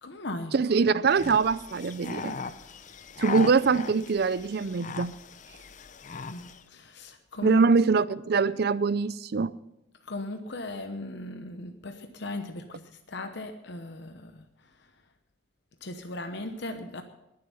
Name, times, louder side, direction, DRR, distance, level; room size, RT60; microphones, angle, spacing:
voice 1, 0.0-0.6 6.2-7.6 10.0-14.5 14.8-14.9 15.8-17.0, left 2 dB, 60° left, 7 dB, 0.9 m, -38 dB
voice 2, 0.5-2.4 3.2-5.2 7.4-9.6, right 5 dB, 55° right, 17 dB, 0.5 m, -23 dB
sound 1, 1.1-6.6, left 4 dB, 40° left, 0.6 m, -39 dB
20.5 x 7.7 x 5.6 m, 0.90 s
head